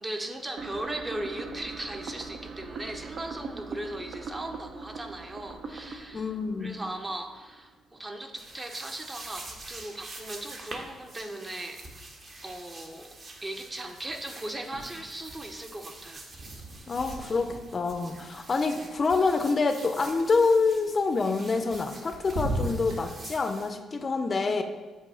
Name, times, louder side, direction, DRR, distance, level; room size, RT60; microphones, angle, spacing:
voice 1, 0.0-6.3 6.6-11.8 12.4-13.2 13.4-16.2, right 1 dB, 20° right, 5 dB, 0.6 m, -38 dB
sound 1, 0.6-7.6, right 4 dB, 65° right, 0.6 m, -41 dB
voice 2, 6.1-6.8 16.9-24.6, left 4 dB, 35° left, 7 dB, 0.5 m, -26 dB
sound 2, 8.4-23.7, right 2 dB, 40° right, 1.0 m, -46 dB
sound 3, 14.6-15.3 15.6-19.7 21.3-22.0 22.2-23.0, right 1 dB, 85° right, 1.5 m, -37 dB
7.5 x 2.7 x 5.5 m, 1.3 s
cardioid pair, 90°, 0 cm